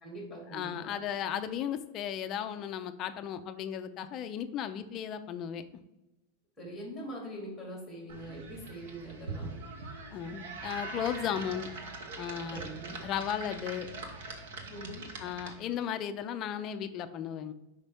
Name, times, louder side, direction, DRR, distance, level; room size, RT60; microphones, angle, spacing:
voice 1, 0.0-1.0 6.6-9.6 12.5-13.0 14.7-15.1, right 1 dB, ahead, -3 dB, 2.2 m, -43 dB
voice 2, 0.5-5.6 10.1-11.7 12.2-12.6 13.0-13.9 15.2-17.5, left 9 dB, 25° left, 9 dB, 0.4 m, -35 dB
sound 1, 8.1-15.8, right 3 dB, 70° right, 1.1 m, -42 dB
5.4 x 5.0 x 3.5 m, 0.97 s
supercardioid pair, 175°, 0 cm